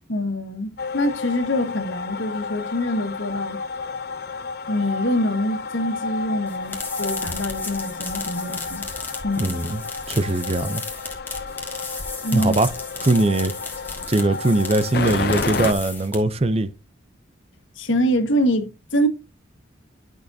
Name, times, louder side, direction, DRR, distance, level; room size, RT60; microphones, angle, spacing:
voice 1, 0.1-3.6 4.7-8.9 9.2-9.6 12.2-12.6 17.8-19.1, equal, 80° left, 1.6 m, -25 dB
sound 1, 0.8-15.7, left 4 dB, 50° left, 0.6 m, -31 dB
sound 2, 6.5-16.4, left 3 dB, 10° left, 1.6 m, -35 dB
voice 2, 9.4-9.8 10.1-10.8 12.3-12.7 13.0-13.5 14.1-16.7, right 2 dB, 30° right, 0.5 m, -21 dB
11.0 x 6.4 x 2.7 m
head